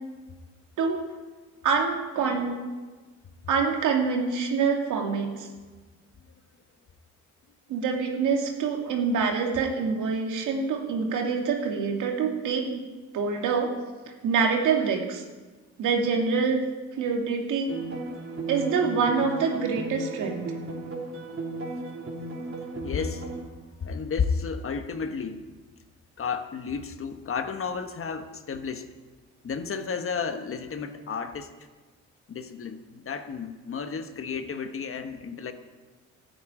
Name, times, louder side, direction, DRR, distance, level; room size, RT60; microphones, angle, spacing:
voice 1, 1.6-2.6 3.5-5.5 7.7-12.8 13.1-13.7 14.2-15.2 15.8-16.6 17.0-17.8 18.5-20.4, right 5 dB, 85° right, 2 dB, 2.6 m, -26 dB
sound 1, 17.7-23.4, right 2 dB, 45° right, 3.4 m, -36 dB
voice 2, 22.8-23.2 23.7-25.5 26.2-29.0 29.4-31.5 32.3-35.5, left 5 dB, 45° left, 8 dB, 1.3 m, -32 dB
12.5 x 9.4 x 9.0 m, 1.3 s
cardioid pair, 90°, 30 cm